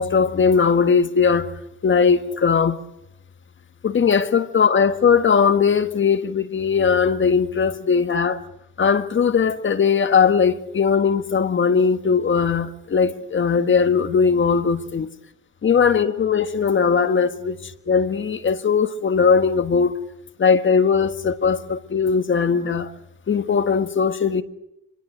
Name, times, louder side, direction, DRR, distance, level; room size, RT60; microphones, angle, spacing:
voice 1, 0.0-1.5 1.8-2.8 3.8-8.4 8.8-15.1 15.6-20.0 20.4-22.9 23.3-24.4, left 6 dB, 40° left, 1.6 m, -19 dB
27.0 x 22.0 x 6.7 m
cardioid pair, 90°, 30 cm